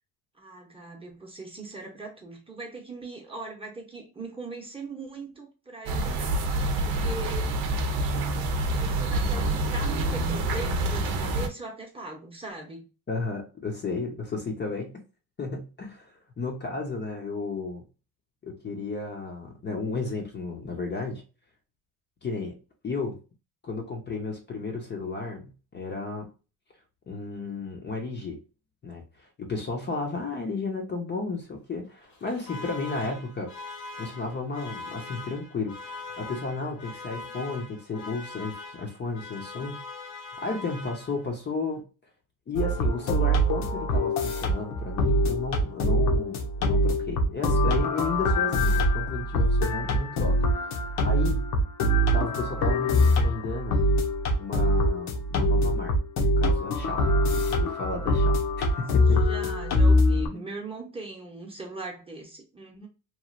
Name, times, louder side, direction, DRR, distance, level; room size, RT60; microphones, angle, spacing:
voice 1, 0.4-7.5 8.7-12.9 33.1-33.3 59.1-62.9, right 3 dB, 15° right, 0.8 m, -40 dB
sound 1, 5.9-11.5, right 2 dB, 70° right, 0.7 m, -27 dB
voice 2, 13.1-15.0 15.4-17.8 18.4-21.2 22.2-22.6 22.8-23.2 23.6-26.3 27.1-28.4 28.8-33.5 33.9-39.8 40.4-41.9 42.5-51.4 52.1-53.8 54.4-55.9 56.4-59.2 60.3-60.4, left 3 dB, 30° left, 0.7 m, -33 dB
Alarm, 32.0-41.4, left 3 dB, 90° left, 1.6 m, -42 dB
sound 2, 42.6-60.3, equal, 70° left, 0.9 m, -24 dB
3.1 x 2.4 x 2.4 m
cardioid pair, 130°, 39 cm